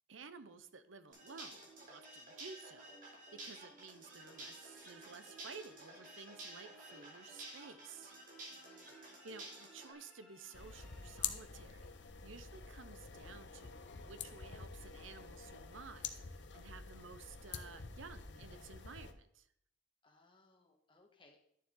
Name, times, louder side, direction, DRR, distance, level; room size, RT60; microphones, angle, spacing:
voice 1, 0.1-3.0 3.3-8.1 9.2-11.9 12.2-19.5, right 4 dB, 90° right, 12 dB, 0.7 m, -54 dB
sound 1, 1.1-9.9, right 2 dB, 45° right, 2.7 m, -52 dB
sound 2, 4.2-11.5, left 1 dB, 5° left, 2.5 m, -64 dB
voice 2, 8.5-9.0 20.0-21.4, left 2 dB, 25° left, 2 dB, 1.6 m, -67 dB
sound 3, 10.5-19.1, left 7 dB, 65° left, 0.8 m, -47 dB
11.0 x 7.1 x 3.8 m, 0.71 s
head